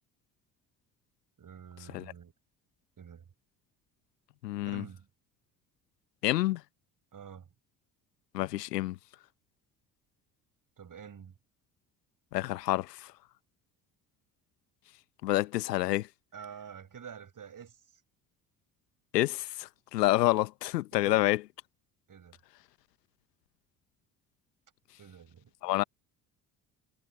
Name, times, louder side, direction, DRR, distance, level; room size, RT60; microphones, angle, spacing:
voice 1, 1.4-2.3 3.0-3.3 4.7-5.1 7.1-7.5 10.8-11.3 16.3-17.8 20.9-21.2 22.1-22.4 25.0-25.5, right 7 dB, 40° right, 7.6 m, -47 dB
voice 2, 4.4-4.8 6.2-6.6 8.3-9.0 12.3-13.1 15.2-16.1 19.1-21.4 25.6-25.8, left 17 dB, 80° left, 1.2 m, -28 dB
figure-of-eight pair, 50°, 48 cm